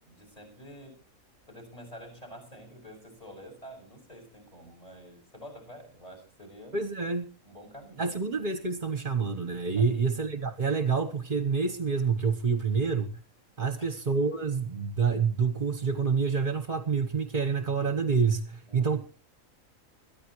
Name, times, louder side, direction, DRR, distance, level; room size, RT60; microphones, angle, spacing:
voice 1, 0.0-1.0 1.5-6.8 7.4-8.2 9.8-10.0 13.8-13.9 18.7-19.0, equal, 25° left, 3 dB, 6.3 m, -48 dB
voice 2, 6.7-7.3 8.0-13.1 13.6-19.0, right 5 dB, 35° right, 8 dB, 1.2 m, -27 dB
23.0 x 14.0 x 3.1 m, 0.37 s
omnidirectional pair, 1.5 m